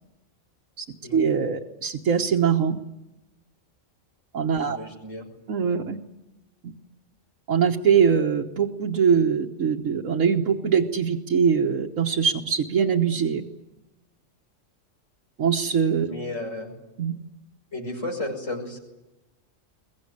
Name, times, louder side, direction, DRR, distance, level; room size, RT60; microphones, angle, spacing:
voice 1, 1.1-2.8 4.3-4.8 5.5-6.0 7.5-13.4 15.4-16.1 17.0-17.1, right 7 dB, 85° right, 1 dB, 1.6 m, -22 dB
voice 2, 4.6-5.3 16.1-16.7 17.7-18.8, left 2 dB, 70° left, 1 dB, 6.3 m, -33 dB
23.0 x 21.0 x 9.8 m, 0.99 s
omnidirectional pair, 1.3 m